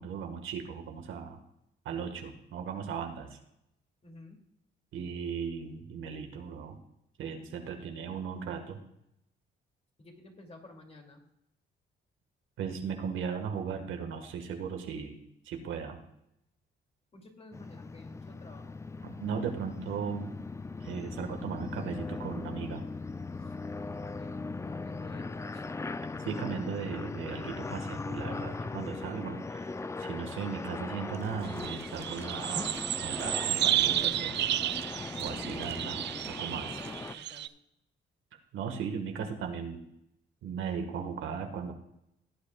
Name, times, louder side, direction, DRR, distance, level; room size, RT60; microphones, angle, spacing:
voice 1, 0.0-1.4 1.8-3.4 4.9-6.8 7.2-8.8 12.6-15.2 15.4-16.0 19.2-20.3 20.8-22.8 26.2-29.7 30.0-32.7 33.0-34.7 35.2-36.7 38.5-39.8 40.4-41.7, right 6 dB, 80° right, 5 dB, 1.6 m, -37 dB
voice 2, 4.0-4.4 10.0-11.2 17.1-18.8 23.4-25.7 36.7-37.5, left 2 dB, 30° left, 2 dB, 2.6 m, -53 dB
sound 1, 17.5-37.2, left 3 dB, 15° left, 0.4 m, -39 dB
sound 2, 31.1-37.4, right 2 dB, 10° right, 0.8 m, -50 dB
sound 3, 31.5-37.5, right 12 dB, 60° right, 0.4 m, -32 dB
17.5 x 8.4 x 2.4 m, 0.80 s
cardioid pair, 90°, 20 cm